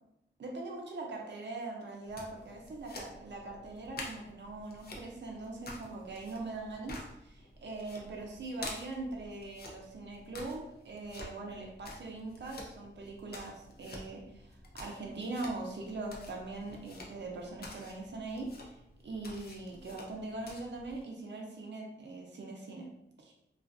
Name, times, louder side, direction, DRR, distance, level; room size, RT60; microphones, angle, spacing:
voice 1, 0.4-18.8 19.0-22.9 23.2-23.3, right 2 dB, 65° right, -1 dB, 0.5 m, -41 dB
sound 1, 2.0-21.0, left 2 dB, 55° left, 0.5 m, -49 dB
2.4 x 2.3 x 2.4 m, 0.82 s
wide cardioid pair, 85°, 19 cm